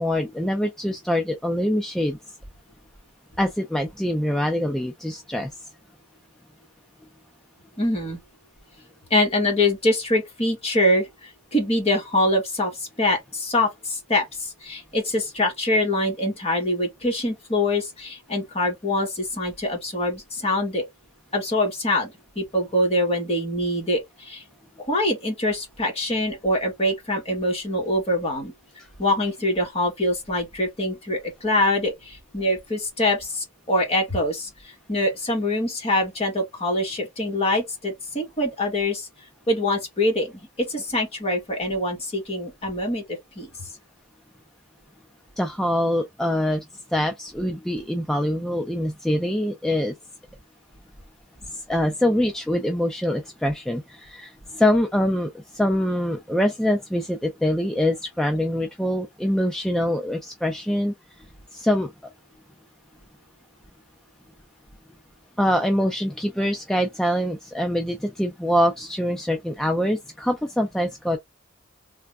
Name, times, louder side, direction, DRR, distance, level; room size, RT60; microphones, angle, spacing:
voice 1, 0.0-2.2 3.4-5.5 45.4-46.6 46.9-49.9 51.5-61.2 61.5-61.9 65.4-71.2, left 1 dB, ahead, 0.4 m, -24 dB
voice 2, 7.8-8.2 9.1-20.9 21.3-24.4 24.9-28.5 29.0-39.1 39.5-40.3 40.6-43.7, left 1 dB, 30° left, 1.3 m, -24 dB
3.3 x 2.1 x 3.4 m
head